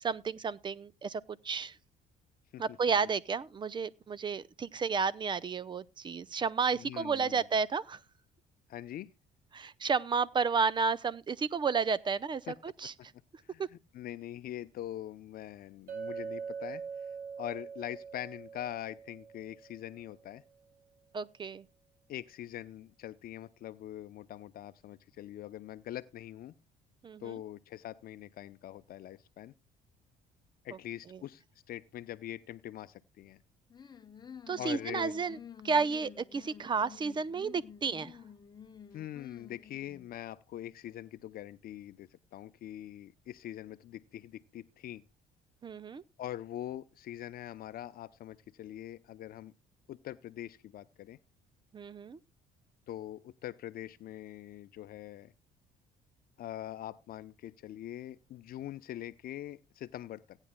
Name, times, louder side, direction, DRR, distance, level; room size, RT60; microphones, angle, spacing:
voice 1, 0.0-1.7 2.6-8.0 9.5-12.9 21.1-21.6 27.0-27.4 34.5-35.4 35.6-38.1 45.6-46.0 51.7-52.2, right 5 dB, 25° right, 0.6 m, -32 dB
voice 2, 6.7-7.4 8.7-9.1 12.5-12.6 12.8-13.1 13.4-16.8 17.4-20.4 22.1-26.5 27.2-29.5 30.6-33.4 34.6-35.1 38.9-45.0 46.2-49.5 49.9-51.2 52.9-55.3 56.4-60.4, left 12 dB, 60° left, 0.7 m, -43 dB
Chink clink, 15.9-20.1, right 6 dB, 65° right, 3.6 m, -43 dB
sound 1, 33.7-40.1, left 7 dB, 25° left, 0.8 m, -51 dB
17.0 x 9.8 x 2.2 m
cardioid pair, 110°, 17 cm